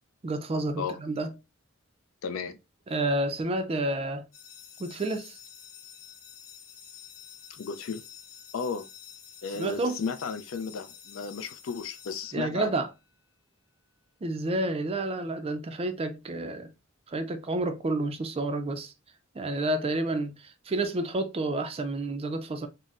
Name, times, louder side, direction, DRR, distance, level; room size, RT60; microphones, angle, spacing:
voice 1, 0.2-1.3 2.9-4.2 4.8-5.4 9.6-10.0 12.3-12.9 14.2-16.7 17.1-18.9 19.3-22.7, right 2 dB, 30° right, 0.4 m, -30 dB
voice 2, 2.2-2.6 7.5-8.0 8.5-8.9 9.4-12.8, left 5 dB, 65° left, 0.4 m, -34 dB
sound 1, 4.3-13.0, left 8 dB, 35° left, 0.9 m, -49 dB
3.9 x 2.0 x 2.4 m
head